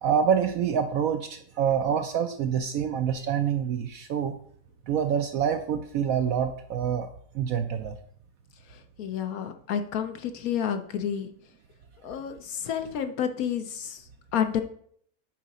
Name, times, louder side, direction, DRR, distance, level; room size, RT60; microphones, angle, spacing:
voice 1, 0.0-4.4 4.9-7.1 7.3-7.9, right 8 dB, 70° right, 7 dB, 0.8 m, -26 dB
voice 2, 8.7-11.3 12.0-14.6, left 8 dB, 65° left, 7 dB, 1.0 m, -30 dB
7.4 x 5.0 x 4.1 m, 0.62 s
omnidirectional pair, 1.8 m